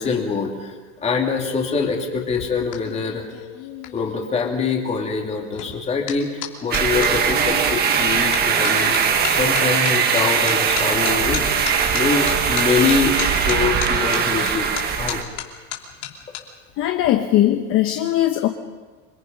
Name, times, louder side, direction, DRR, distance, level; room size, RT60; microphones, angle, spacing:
voice 1, 0.0-3.3 3.9-8.9 9.2-14.7 15.0-15.2, left 5 dB, 20° left, 1 dB, 2.8 m, -24 dB
sound 1, 2.1-7.1 7.7-8.0 8.3-16.4 16.7-17.1, left 12 dB, 70° left, 3.3 m, -34 dB
sound 2, 6.7-15.2, right 6 dB, 25° right, 1.5 m, -20 dB
voice 2, 16.8-18.5, left 13 dB, 35° left, 6 dB, 1.0 m, -19 dB
27.0 x 22.5 x 5.4 m, 1.4 s
supercardioid pair, 165°, 36 cm